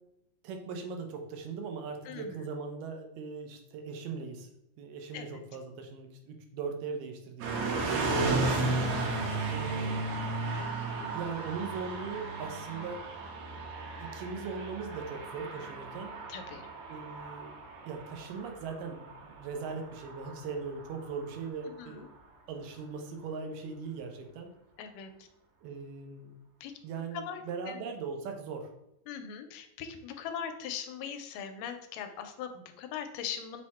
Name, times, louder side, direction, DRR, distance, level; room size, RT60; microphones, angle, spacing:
voice 1, 0.4-4.5 4.8-8.5 9.5-10.2 11.1-13.0 14.0-16.1 16.9-17.5 17.9-22.1 22.5-24.5 25.6-26.3 26.8-28.7, right 5 dB, 90° right, 4 dB, 2.3 m, -40 dB
voice 2, 2.1-2.5 5.1-5.3 16.3-16.6 21.7-22.1 24.8-25.3 26.6-26.7 27.1-27.8 29.1-33.6, left 8 dB, 90° left, 7 dB, 2.2 m, -40 dB
sound 1, 7.4-21.4, right 3 dB, 70° right, 1.6 m, -34 dB
6.0 x 2.1 x 4.1 m, 0.84 s
omnidirectional pair, 3.7 m